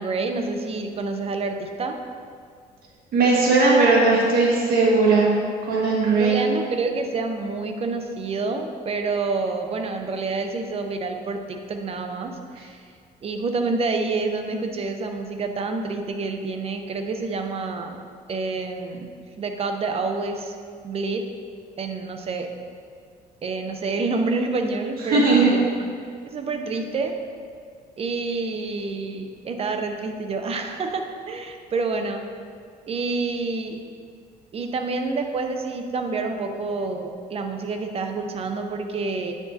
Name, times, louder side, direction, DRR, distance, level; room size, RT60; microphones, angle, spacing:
voice 1, 0.0-2.0 6.1-12.8 13.2-18.0 18.3-19.1 19.4-20.6 20.8-21.3 21.8-22.5 23.4-25.8 26.3-27.1 28.0-32.2 32.9-33.8 34.5-39.3, right 3 dB, 35° right, 5 dB, 0.7 m, -28 dB
voice 2, 3.1-5.3 5.7-6.4 25.1-25.5, right 3 dB, 60° right, -4 dB, 1.8 m, -18 dB
8.9 x 5.9 x 2.8 m, 2.1 s
cardioid pair, 110°, 17 cm